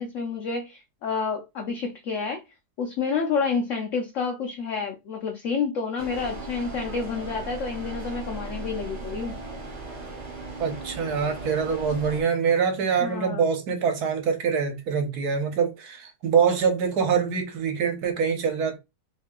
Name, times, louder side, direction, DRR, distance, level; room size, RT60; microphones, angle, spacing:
voice 1, 0.0-2.4 2.8-9.4 13.0-13.4, left 5 dB, 65° left, 0.8 m, -29 dB
sound 1, 6.0-12.2, right 2 dB, 35° right, 0.7 m, -37 dB
voice 2, 10.6-18.8, right 6 dB, 70° right, 1.4 m, -24 dB
3.1 x 2.7 x 3.6 m
omnidirectional pair, 1.8 m